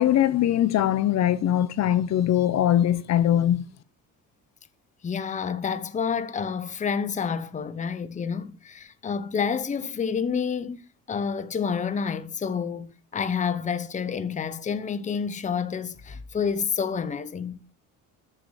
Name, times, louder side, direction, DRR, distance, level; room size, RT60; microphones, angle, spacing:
voice 1, 0.0-3.6, left 11 dB, 50° left, 1.0 m, -21 dB
voice 2, 5.0-17.6, left 6 dB, 20° left, 1.0 m, -29 dB
14.0 x 7.6 x 6.4 m
cardioid pair, 160°, 34 cm